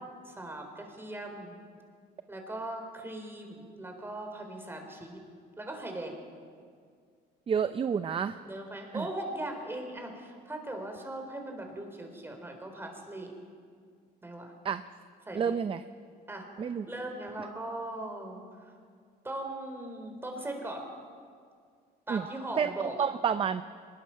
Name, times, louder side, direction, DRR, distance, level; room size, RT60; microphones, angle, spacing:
voice 1, 0.0-1.6 2.3-5.2 5.6-6.2 8.4-13.3 14.2-14.5 15.3-15.5 16.3-18.7 19.2-20.9 22.1-23.0, right 1 dB, 15° right, 3 dB, 4.0 m, -39 dB
voice 2, 7.5-8.4 8.9-9.1 14.6-14.8 15.3-15.8 16.6-16.9 22.1-22.2 22.6-23.6, right 7 dB, 30° right, 11 dB, 0.6 m, -29 dB
23.5 x 20.5 x 5.8 m, 2.1 s
cardioid pair, 110°, 17 cm